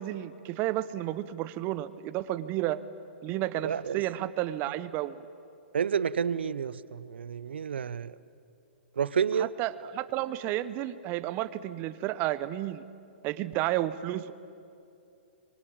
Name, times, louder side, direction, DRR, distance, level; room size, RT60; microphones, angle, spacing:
voice 1, 0.0-2.8 3.2-5.2 9.4-12.8 13.2-14.3, right 14 dB, 30° right, 15 dB, 0.9 m, -32 dB
voice 2, 3.6-4.0 5.7-8.1 9.0-9.5, right 7 dB, 70° right, 18 dB, 0.8 m, -29 dB
25.5 x 24.0 x 8.8 m, 2.6 s
figure-of-eight pair, 120°, 6 cm